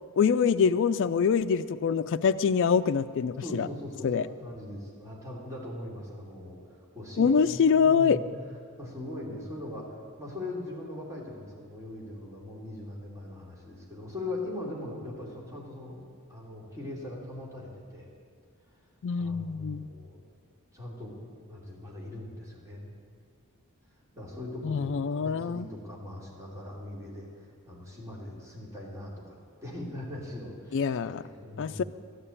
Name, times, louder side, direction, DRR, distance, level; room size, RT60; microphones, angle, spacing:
voice 1, 0.2-3.7 4.0-4.3 7.2-8.2 19.0-19.9 24.6-25.7 30.7-31.2 31.6-31.8, left 6 dB, 60° left, 9 dB, 0.4 m, -25 dB
voice 2, 3.4-6.6 6.9-8.2 8.8-16.0 16.3-18.1 19.1-20.2 20.7-21.2 21.4-22.9 24.2-27.3 27.7-29.3 29.6-30.9 31.2-31.8, left 1 dB, 15° right, -4 dB, 3.0 m, -40 dB
13.0 x 9.0 x 8.5 m, 2.1 s
head